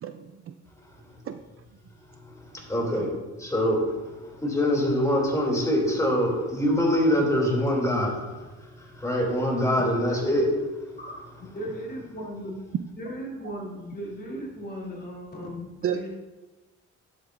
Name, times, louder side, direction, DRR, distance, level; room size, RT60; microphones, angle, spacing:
voice 1, 0.0-0.5 1.2-1.4 2.9-3.1 15.8-16.1, right 9 dB, 45° right, 8 dB, 0.5 m, -32 dB
voice 2, 2.3-8.2 8.7-10.6, equal, 10° left, -2 dB, 2.8 m, -24 dB
voice 3, 11.0-12.6 12.9-16.1, equal, 30° left, -4 dB, 2.9 m, -37 dB
10.5 x 7.8 x 2.6 m, 1.2 s
cardioid pair, 90°, 30 cm